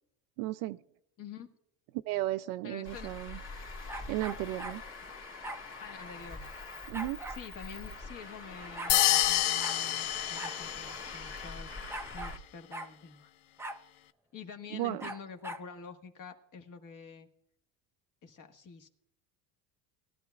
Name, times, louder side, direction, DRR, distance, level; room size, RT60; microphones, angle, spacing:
voice 1, 0.4-0.8 2.1-3.4 4.1-4.8 6.9-7.2 14.7-15.1, right 16 dB, 85° right, 9 dB, 0.5 m, -34 dB
voice 2, 1.2-1.5 2.6-3.1 5.8-6.4 7.3-11.7 12.1-13.3 14.3-17.3 18.2-18.9, left 6 dB, 45° left, 5 dB, 1.5 m, -47 dB
Traffic noise roadway noise, 2.8-12.4, left 3 dB, 30° left, 1.7 m, -44 dB
sound 1, 3.9-4.8 5.4-5.6 6.9-7.4 8.3-8.4 8.6-9.0 9.6-9.8 10.3-10.6 10.9-11.0 11.9-12.4 12.7-12.9 13.6-13.8 15.0-15.7, right 1 dB, 5° right, 0.5 m, -41 dB
sound 2, 8.9-11.2, left 14 dB, 80° left, 0.6 m, -28 dB
19.5 x 12.5 x 2.3 m, 0.75 s
supercardioid pair, 105°, 44 cm